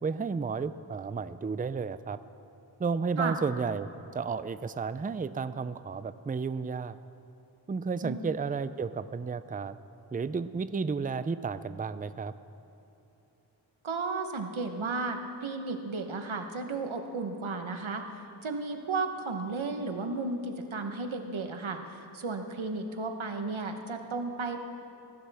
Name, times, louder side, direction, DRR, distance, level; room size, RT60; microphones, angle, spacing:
voice 1, 0.0-2.2 2.8-7.0 7.7-9.8 10.1-12.3, right 5 dB, 20° right, 14 dB, 0.4 m, -32 dB
voice 2, 13.8-24.6, right 3 dB, 85° right, 5 dB, 1.1 m, -34 dB
20.5 x 12.0 x 3.5 m, 3.0 s
wide cardioid pair, 45°, 46 cm